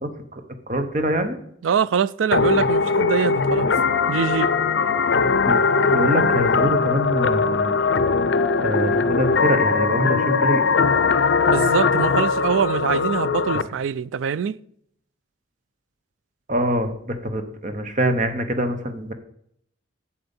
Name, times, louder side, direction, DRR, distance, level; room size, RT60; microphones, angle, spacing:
voice 1, 0.0-1.4 5.4-5.7 5.9-7.8 8.6-10.6 16.5-19.1, right 1 dB, 40° right, 1.0 m, -24 dB
voice 2, 1.6-3.7 4.1-4.5 11.5-14.6, right 7 dB, 90° right, 0.4 m, -24 dB
sound 1, 2.3-13.6, left 4 dB, 60° left, 0.5 m, -20 dB
8.0 x 7.6 x 5.3 m
head